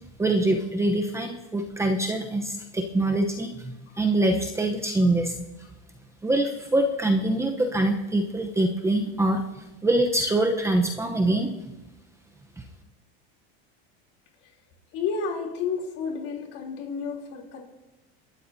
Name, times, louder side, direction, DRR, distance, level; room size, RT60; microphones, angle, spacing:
voice 1, 0.2-5.3 6.2-11.5 12.6-12.7, right 1 dB, 10° right, 3 dB, 0.9 m, -24 dB
voice 2, 14.9-17.6, left 5 dB, 50° left, 0 dB, 3.3 m, -31 dB
27.5 x 12.5 x 2.8 m, 0.96 s
supercardioid pair, 140°, 31 cm